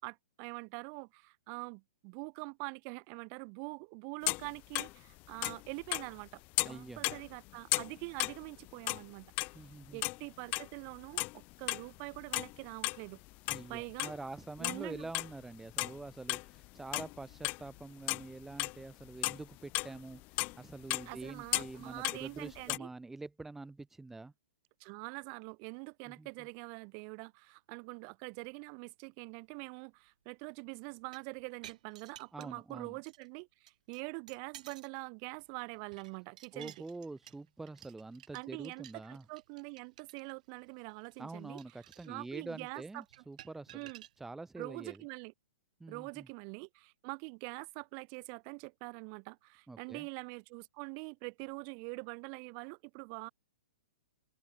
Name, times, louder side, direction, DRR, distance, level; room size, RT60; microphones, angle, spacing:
voice 1, 0.0-9.3 9.9-13.2 13.7-14.1 14.6-15.1 21.1-22.9 24.8-36.7 38.3-41.6 42.1-43.0 43.7-44.0 44.6-45.3 45.9-53.3, right 40 dB or more, 40° right, 4.3 m, -44 dB
sound 1, 4.3-4.9 5.2-6.3 6.5-9.0 9.4-10.3 10.5-13.0 13.3-14.2 14.6-16.7 16.9-17.8 18.1-22.8, left 23 dB, 35° left, 0.8 m, -35 dB
voice 2, 6.6-7.0 9.5-10.0 13.5-24.3 26.1-26.3 32.3-33.0 36.5-39.2 41.2-43.9 44.2-45.0 45.8-46.3 49.7-50.1, right 3 dB, 5° right, 1.3 m, -46 dB
sound 2, 30.9-32.7 33.1-33.3 33.7-35.0 35.3-44.1, right 12 dB, 55° right, 2.2 m, -55 dB
open air
figure-of-eight pair, 115°, 5 cm